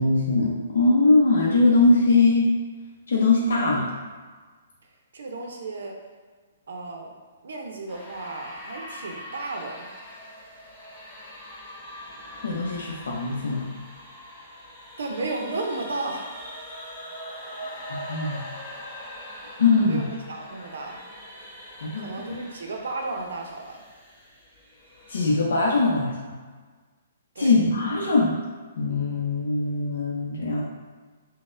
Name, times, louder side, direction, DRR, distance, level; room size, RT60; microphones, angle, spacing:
voice 1, 0.0-2.5 3.1-3.9 12.4-13.7 17.9-18.4 19.6-20.0 21.8-22.4 25.1-26.3 27.4-28.3 28.8-30.6, left 3 dB, 80° left, -3 dB, 0.6 m, -21 dB
voice 2, 5.1-6.0 6.7-7.1 7.4-9.9 14.5-14.6 15.0-16.3 19.9-21.0 22.0-23.8 27.4-27.6, right 3 dB, 80° right, 2 dB, 0.5 m, -34 dB
sound 1, 7.9-25.3, equal, 20° left, 1.3 m, -42 dB
4.0 x 2.1 x 2.5 m, 1.4 s
hypercardioid pair, 160°, 0 cm